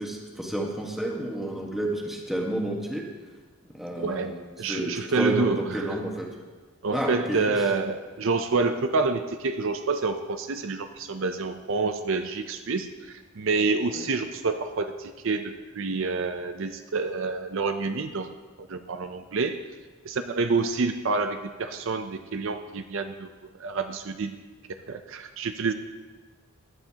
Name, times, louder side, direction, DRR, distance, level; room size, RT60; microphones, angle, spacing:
voice 1, 0.0-3.1 3.7-6.3 6.9-7.6 13.9-14.1, right 1 dB, ahead, -1 dB, 1.3 m, -30 dB
voice 2, 4.0-6.0 6.8-18.3 18.6-19.6 20.0-23.3 23.6-24.4 24.9-25.7, right 4 dB, 60° right, 8 dB, 0.5 m, -28 dB
15.5 x 11.0 x 2.9 m, 1.3 s
head